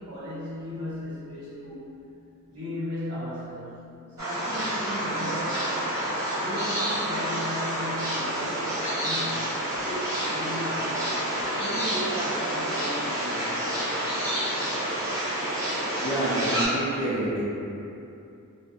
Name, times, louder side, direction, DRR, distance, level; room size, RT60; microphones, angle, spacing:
voice 1, 0.0-1.8 2.5-3.8 4.2-6.0 6.4-11.1 11.6-13.7, equal, 85° right, -13 dB, 1.5 m, -36 dB
sound 1, 4.2-16.7, right 1 dB, 15° right, 1.0 m, -29 dB
voice 2, 16.0-17.4, right 1 dB, 30° left, -9 dB, 0.6 m, -27 dB
2.4 x 2.3 x 2.6 m, 2.7 s
head